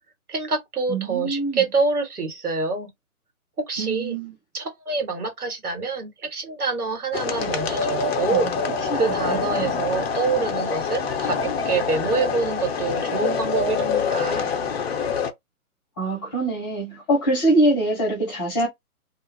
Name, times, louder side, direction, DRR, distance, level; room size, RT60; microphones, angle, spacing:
voice 1, 0.3-2.9 3.7-4.2 4.5-8.5 8.9-14.5, right 4 dB, 80° right, 1.6 m, -26 dB
voice 2, 0.9-1.6 3.8-4.3 8.3-8.4 8.9-9.0 9.3-9.6 16.0-18.7, right 1 dB, 15° left, 0.8 m, -23 dB
sound 1, 7.1-15.3, left 5 dB, 45° left, 0.6 m, -25 dB
2.4 x 2.3 x 3.2 m
figure-of-eight pair, 140°, 45 cm